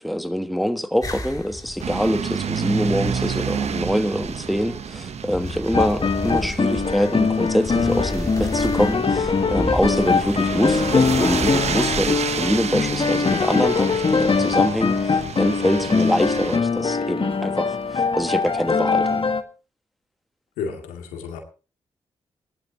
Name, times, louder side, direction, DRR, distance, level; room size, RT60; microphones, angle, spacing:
voice 1, 0.0-19.3, equal, ahead, 1.5 m, -24 dB
sound 1, 1.0-12.2, left 1 dB, 30° left, 2.7 m, -33 dB
sound 2, 1.8-16.6, right 7 dB, 60° right, 0.9 m, -30 dB
sound 3, 5.7-19.4, left 5 dB, 45° left, 1.4 m, -22 dB
voice 2, 20.6-21.4, left 6 dB, 90° left, 2.2 m, -31 dB
18.0 x 12.0 x 2.8 m
hypercardioid pair, 40°, 13 cm